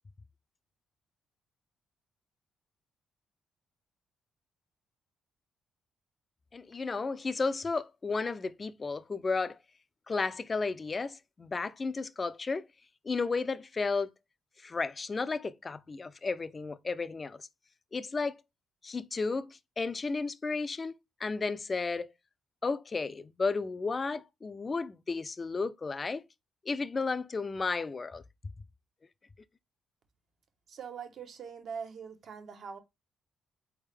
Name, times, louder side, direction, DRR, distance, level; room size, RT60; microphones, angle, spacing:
voice 1, 6.5-9.6 10.1-12.7 13.0-14.1 14.6-17.5 17.9-18.4 18.8-20.9 21.2-22.1 22.6-26.2 26.7-28.2, left 4 dB, 30° left, 0.5 m, -33 dB
voice 2, 30.7-32.8, right 6 dB, 60° right, 1.0 m, -42 dB
4.1 x 3.5 x 3.3 m
cardioid pair, 90°, 0 cm